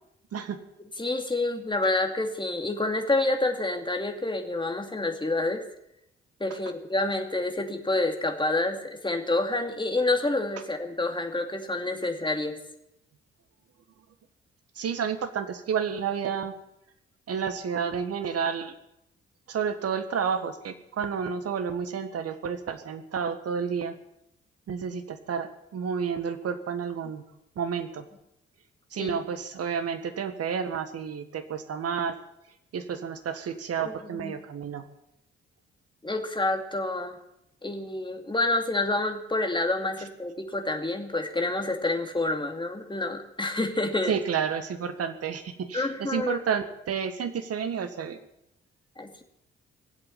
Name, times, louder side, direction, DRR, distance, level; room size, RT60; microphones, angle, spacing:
voice 1, 1.0-5.6 6.4-12.6 29.0-29.2 33.8-34.3 36.0-37.2 37.6-44.1 45.7-46.4 49.0-49.2, left 2 dB, 15° left, 5 dB, 2.5 m, -28 dB
voice 2, 14.7-16.5 17.3-18.7 19.5-23.9 24.7-27.2 27.5-28.0 28.9-32.2 32.7-34.8 44.1-48.2, right 7 dB, 55° right, 9 dB, 1.7 m, -30 dB
18.5 x 8.2 x 9.1 m, 0.81 s
hypercardioid pair, 40°, 29 cm